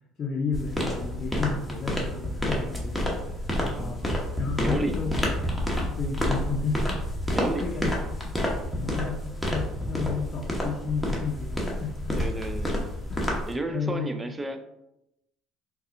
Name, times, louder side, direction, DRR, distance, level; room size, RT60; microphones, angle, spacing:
voice 1, 0.2-5.2 5.9-7.9 8.2-8.4 8.8-12.2 13.1-13.4 13.7-14.1, left 5 dB, 45° left, -2 dB, 0.6 m, -33 dB
sound 1, 0.5-13.5, left 1 dB, ahead, 0.9 m, -29 dB
voice 2, 3.7-4.0 4.6-4.9 7.3-7.6 12.2-12.9 13.5-14.6, right 2 dB, 20° right, 7 dB, 0.4 m, -32 dB
4.0 x 2.3 x 2.5 m, 0.85 s
supercardioid pair, 75°, 0 cm